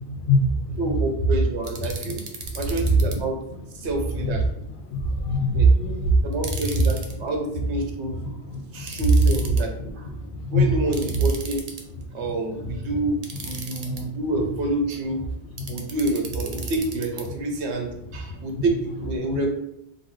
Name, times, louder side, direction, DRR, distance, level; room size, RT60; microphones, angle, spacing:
voice 1, 0.2-0.7 4.2-4.3 4.9-6.2 8.5-9.0 10.3-10.7 13.8-14.0 15.7-15.8, equal, 55° left, 4 dB, 0.7 m, -21 dB
voice 2, 0.8-2.2 2.5-3.4 3.7-4.5 5.5-5.7 6.2-8.2 8.7-10.1 10.5-11.7 12.1-15.2 15.7-19.5, right 2 dB, 75° right, 2 dB, 1.0 m, -28 dB
sound 1, 1.6-3.2 6.3-7.1 8.9-9.6 10.9-12.0 13.2-14.0 15.6-17.2, right 4 dB, 50° right, 0.5 m, -37 dB
3.8 x 2.6 x 3.1 m, 0.80 s
omnidirectional pair, 1.2 m